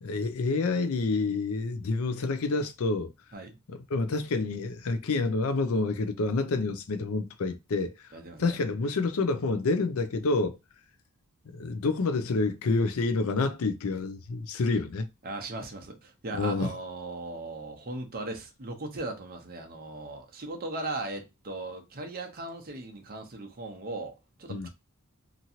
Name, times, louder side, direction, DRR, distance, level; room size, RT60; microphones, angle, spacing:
voice 1, 0.0-3.1 3.7-7.9 8.4-10.6 11.5-15.1 16.4-16.7 24.5-24.7, left 3 dB, 70° left, 0.5 m, -28 dB
voice 2, 8.1-8.5 15.2-24.7, right 2 dB, 45° right, 0.7 m, -38 dB
2.9 x 2.6 x 2.7 m
head